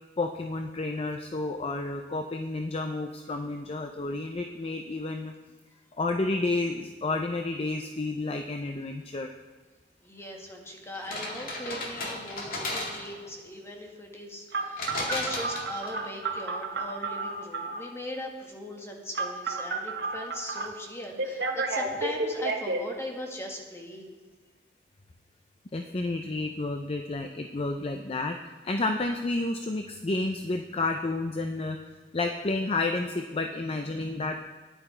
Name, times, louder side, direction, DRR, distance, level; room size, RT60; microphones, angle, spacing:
voice 1, 0.2-5.3 6.0-9.3 25.7-31.8 32.1-34.4, left 2 dB, 35° left, 5 dB, 0.5 m, -30 dB
voice 2, 10.0-24.1, left 1 dB, 15° left, 1 dB, 1.8 m, -39 dB
sound 1, 10.9-13.3 14.8-16.1, left 2 dB, 55° left, 2.1 m, -34 dB
Telephone, 14.5-17.9 19.1-20.7 21.2-22.8, right 3 dB, 75° right, 1.2 m, -31 dB
12.5 x 10.5 x 4.4 m, 1.3 s
head